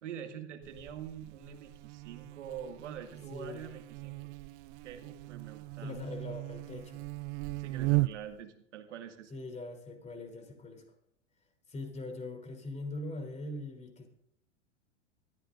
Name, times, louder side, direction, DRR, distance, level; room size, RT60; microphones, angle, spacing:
voice 1, 0.0-4.3 4.8-6.1 7.6-9.3, right 9 dB, 75° right, 5 dB, 2.2 m, -45 dB
Buzz, 0.6-8.4, right 23 dB, 40° right, 0.4 m, -37 dB
voice 2, 3.3-3.7 5.8-7.1 9.3-10.8 11.7-14.1, left 2 dB, 20° left, 4 dB, 3.4 m, -42 dB
23.5 x 14.5 x 2.6 m, 0.70 s
hypercardioid pair, 105°, 36 cm